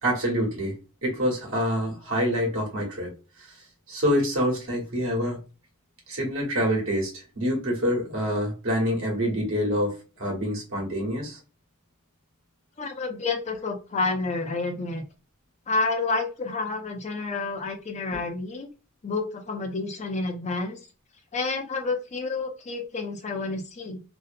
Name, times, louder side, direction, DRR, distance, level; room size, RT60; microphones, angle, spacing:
voice 1, 0.0-3.1 3.4-5.4 6.1-11.4, equal, 60° right, 1.1 m, -26 dB
voice 2, 12.8-15.0 15.7-18.7 19.0-20.8 21.3-24.0, left 3 dB, 30° left, 0.4 m, -29 dB
2.6 x 2.1 x 2.5 m
head